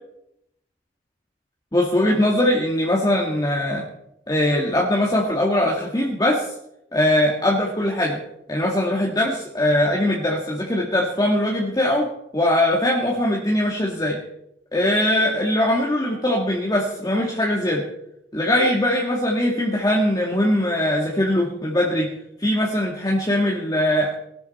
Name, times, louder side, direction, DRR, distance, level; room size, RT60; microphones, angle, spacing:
voice 1, 1.7-3.8 4.3-6.5 6.9-8.2 8.5-14.2 14.7-17.9 18.3-22.1 22.4-24.1, left 1 dB, 20° left, -2 dB, 1.9 m, -21 dB
19.5 x 13.5 x 4.2 m, 0.79 s
head